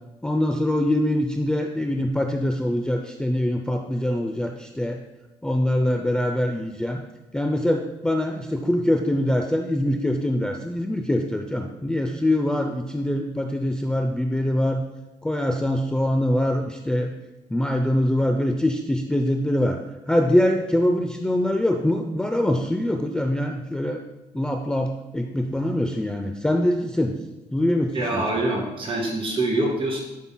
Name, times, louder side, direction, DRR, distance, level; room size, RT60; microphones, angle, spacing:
voice 1, 0.2-5.0 5.4-7.0 7.3-14.8 15.2-17.1 17.5-19.8 20.1-24.0 24.3-27.2 27.5-28.2, left 1 dB, 5° left, 4 dB, 0.4 m, -23 dB
voice 2, 27.9-30.0, right 2 dB, 35° right, -2 dB, 2.4 m, -25 dB
11.0 x 5.6 x 2.2 m, 1.0 s
cardioid pair, 95°, 15 cm